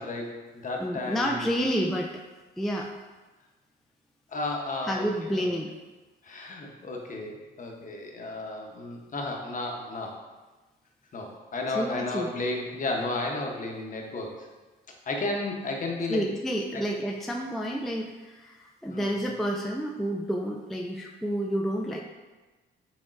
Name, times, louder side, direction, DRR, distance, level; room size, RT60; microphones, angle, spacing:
voice 1, 0.0-1.4 4.3-5.1 5.3-5.5 6.2-10.2 11.1-14.5 15.1-16.2 16.7-16.8 18.9-19.2, left 2 dB, 40° left, 1 dB, 0.9 m, -33 dB
voice 2, 0.8-2.2 2.6-2.9 4.9-5.7 11.7-12.3 16.1-22.0, equal, ahead, 0 dB, 0.3 m, -29 dB
6.0 x 3.5 x 2.5 m, 1.2 s
cardioid pair, 90°, 20 cm